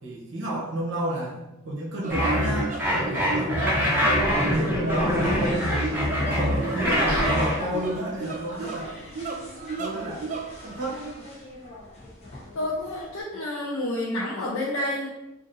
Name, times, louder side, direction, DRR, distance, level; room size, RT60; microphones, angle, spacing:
voice 1, 0.0-4.2 4.5-5.9 6.2-9.0 9.8-10.3 10.6-11.1, right 1 dB, 60° right, -4 dB, 0.7 m, -31 dB
sound 1, 2.0-11.1, right 3 dB, 35° right, 0.4 m, -34 dB
sound 2, 2.1-7.6, equal, 10° right, 0.8 m, -24 dB
sound 3, 4.3-13.2, left 2 dB, 30° left, 0.7 m, -39 dB
voice 2, 12.5-15.1, left 1 dB, 75° left, -5 dB, 0.6 m, -29 dB
2.6 x 2.5 x 3.9 m, 0.99 s
head